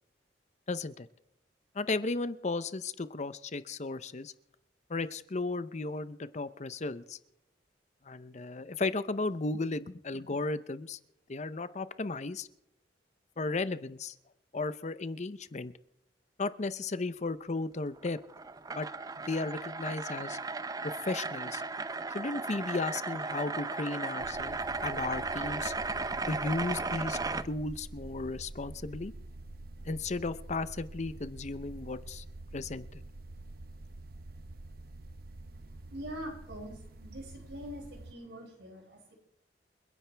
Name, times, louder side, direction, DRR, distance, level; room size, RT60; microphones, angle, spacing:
voice 1, 0.7-1.1 1.7-4.3 4.9-7.2 8.0-11.0 11.3-12.5 13.4-14.1 14.5-15.7 16.4-18.2 18.7-18.9 19.2-20.4 20.8-21.6 22.1-25.7 26.3-27.2 27.4-29.1 29.8-32.2 32.5-33.0, left 3 dB, 40° left, 14 dB, 0.7 m, -35 dB
sound 1, 18.0-27.4, right 3 dB, 20° right, 0.5 m, -36 dB
sound 2, 24.2-38.1, right 2 dB, 55° right, 0.7 m, -47 dB
voice 2, 35.9-39.1, equal, 75° right, -1 dB, 6.3 m, -44 dB
29.5 x 10.5 x 3.4 m, 0.81 s
head